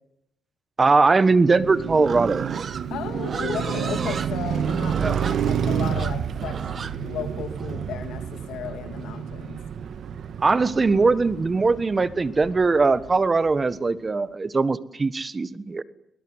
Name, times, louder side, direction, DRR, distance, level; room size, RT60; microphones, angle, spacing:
voice 1, 0.8-2.5 4.9-5.2 10.4-15.8, right 3 dB, 30° right, 15 dB, 1.4 m, -21 dB
Car passing by, 1.3-13.5, right 8 dB, 65° right, 1.5 m, -30 dB
Livestock farm animals working animals, 2.0-8.1, right 6 dB, 45° right, 1.3 m, -35 dB
voice 2, 2.9-6.7 7.0-9.6, left 9 dB, 85° left, 6 dB, 2.7 m, -35 dB
21.5 x 20.5 x 9.8 m, 0.80 s
cardioid pair, 90°, 0 cm